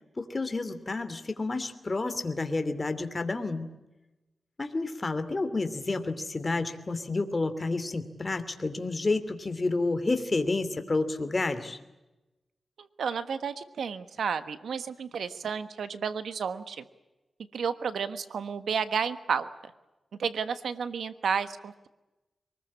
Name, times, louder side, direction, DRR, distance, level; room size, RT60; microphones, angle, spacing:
voice 1, 0.2-3.7 4.6-11.8, left 3 dB, 35° left, 9 dB, 2.8 m, -30 dB
voice 2, 12.8-16.8 17.5-19.5 20.2-21.9, right 6 dB, 90° right, 11 dB, 1.3 m, -32 dB
24.0 x 20.5 x 8.7 m, 1.0 s
cardioid pair, 80°, 0 cm